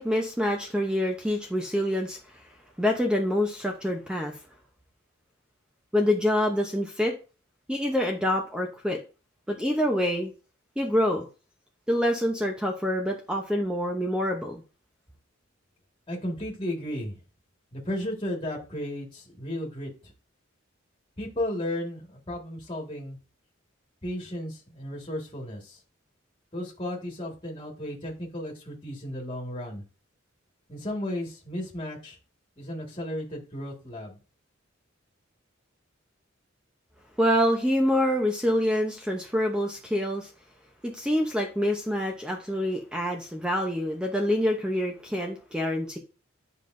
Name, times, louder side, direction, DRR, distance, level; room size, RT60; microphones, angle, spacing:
voice 1, 0.0-2.2 2.8-4.3 5.9-7.1 7.7-9.0 9.5-10.3 10.8-11.3 11.9-14.6 37.2-40.3 40.8-46.0, equal, 5° right, 2 dB, 0.8 m, -26 dB
voice 2, 16.1-17.2 17.7-20.1 21.2-23.2 24.0-25.8 26.5-29.8 30.7-32.2 32.6-34.2, left 1 dB, 25° left, -1 dB, 1.9 m, -34 dB
9.7 x 5.2 x 2.6 m, 0.33 s
head